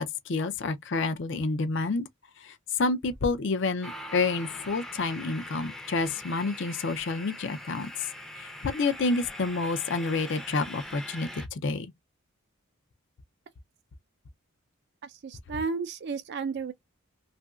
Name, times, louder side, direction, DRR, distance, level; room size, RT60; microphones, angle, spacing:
voice 1, 0.0-2.1 2.4-7.9 8.4-11.9, left 3 dB, 55° left, 0.5 m, -29 dB
sound 1, 3.8-11.5, left 1 dB, ahead, 0.5 m, -42 dB
voice 2, 15.0-16.7, right 5 dB, 50° right, 0.4 m, -33 dB
2.8 x 2.5 x 2.3 m
head